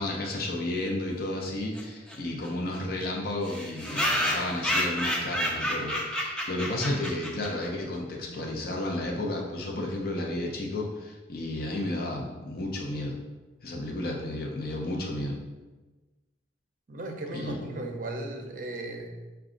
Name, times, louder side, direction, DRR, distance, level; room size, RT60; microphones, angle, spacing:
voice 1, 0.0-13.2 13.6-15.4 17.3-17.6, left 1 dB, 50° left, 0 dB, 0.6 m, -32 dB
sound 1, 1.7-1.8 2.1-2.2 2.4-2.5 2.7-2.8 3.4-7.7, equal, 5° left, 0.4 m, -30 dB
voice 2, 16.9-19.3, right 2 dB, 45° right, 3 dB, 0.6 m, -36 dB
6.0 x 2.3 x 3.7 m, 1.2 s
head